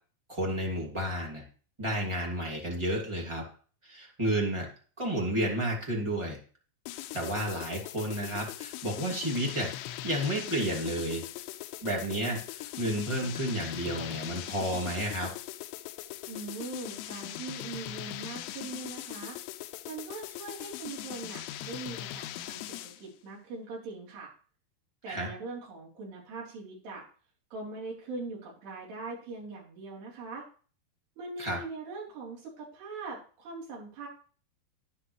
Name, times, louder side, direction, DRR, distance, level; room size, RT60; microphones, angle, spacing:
voice 1, 0.3-1.4 1.8-3.4 3.8-4.7 5.0-6.4 7.1-9.7 10.0-11.2 11.8-15.3 25.1-25.3 31.4-31.6, right 1 dB, 10° right, -1 dB, 1.4 m, -31 dB
sound 1, 6.9-23.1, left 14 dB, 85° left, 2.8 m, -40 dB
voice 2, 16.3-19.4 19.9-24.3 25.0-27.0 27.5-30.5 31.2-34.1, right 3 dB, 75° right, -4 dB, 5.7 m, -41 dB
10.0 x 9.9 x 3.2 m, 0.40 s
omnidirectional pair, 4.9 m